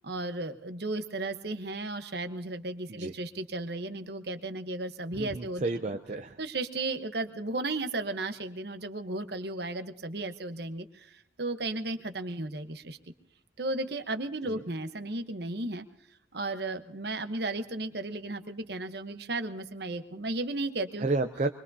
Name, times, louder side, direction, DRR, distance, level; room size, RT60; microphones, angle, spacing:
voice 1, 0.0-5.7 6.4-13.0 13.6-15.8 16.3-21.1, right 2 dB, 60° right, 8 dB, 1.0 m, -34 dB
voice 2, 5.1-6.4 14.4-14.6 21.0-21.5, right 3 dB, 35° right, 5 dB, 0.5 m, -31 dB
24.5 x 21.5 x 2.8 m, 0.80 s
head